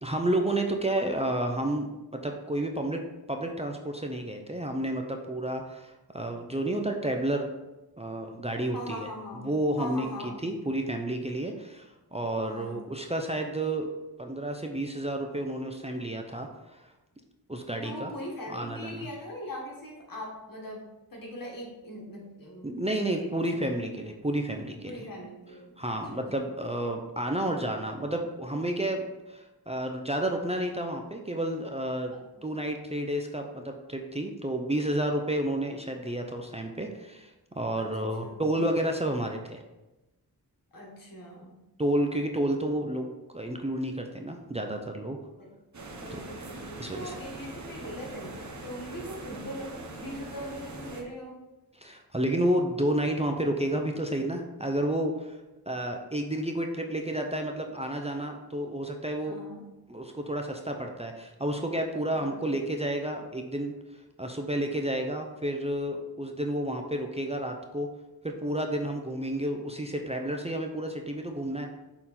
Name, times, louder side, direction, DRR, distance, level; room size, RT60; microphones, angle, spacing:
voice 1, 0.0-3.0 3.3-7.5 8.0-9.1 9.4-13.9 14.2-16.9 17.5-18.1 18.5-19.1 22.6-25.1 25.8-32.1 32.4-39.6 41.8-45.2 46.1-46.2 46.8-47.2 51.7-55.4 55.7-59.4 59.9-63.7 64.2-67.9 68.2-71.7, right 1 dB, 15° right, 3 dB, 0.6 m, -31 dB
voice 2, 8.7-9.5 9.8-10.4 12.5-12.8 17.8-23.5 24.8-26.2 37.8-38.5 40.7-41.6 45.4-45.5 46.0-51.4 59.2-59.7 62.1-62.6, left 1 dB, 60° left, -1 dB, 1.8 m, -41 dB
sound 1, 45.7-51.0, right 2 dB, 45° right, 1.1 m, -42 dB
6.5 x 3.9 x 4.2 m, 1.0 s
wide cardioid pair, 65°, 38 cm